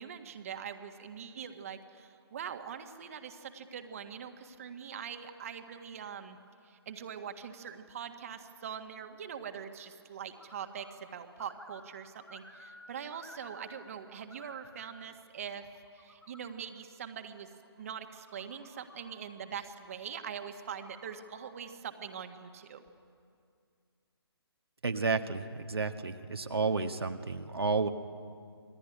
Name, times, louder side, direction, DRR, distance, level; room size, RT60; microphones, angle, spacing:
voice 1, 0.0-6.4 6.6-15.7 15.9-17.5 17.8-22.8, right 8 dB, 35° right, 7 dB, 1.7 m, -43 dB
sound 1, 10.3-11.0 11.3-13.9 14.2-15.1 15.6-16.6 17.5-19.3 20.5-21.6, left 1 dB, 80° left, 5.5 m, -55 dB
voice 2, 24.8-27.9, right 4 dB, 65° right, 5 dB, 1.6 m, -31 dB
28.5 x 21.0 x 9.9 m, 2.3 s
figure-of-eight pair, 145°, 14 cm